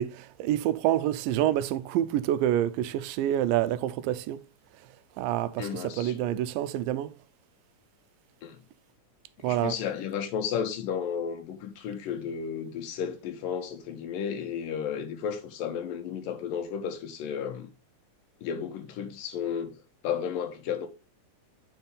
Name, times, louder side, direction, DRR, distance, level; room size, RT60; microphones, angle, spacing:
voice 1, 0.0-4.4 5.2-7.2 9.4-9.7, right 12 dB, 90° right, 2.3 m, -27 dB
voice 2, 5.6-6.4 8.4-8.6 9.4-17.7 18.4-19.7 20.0-20.9, left 7 dB, 80° left, 2.7 m, -33 dB
9.2 x 4.5 x 3.5 m
omnidirectional pair, 3.9 m